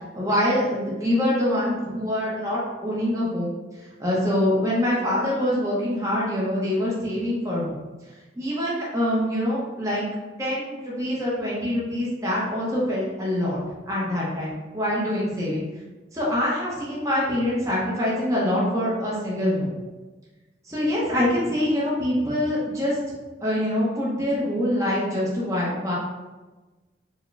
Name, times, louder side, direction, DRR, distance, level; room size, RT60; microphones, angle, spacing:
voice 1, 0.1-3.5 4.0-7.7 8.4-10.0 10.4-13.6 13.9-15.7 16.1-19.7 20.6-23.0 23.4-25.9, left 1 dB, 15° right, -7 dB, 0.8 m, -25 dB
4.6 x 2.2 x 3.3 m, 1.2 s
head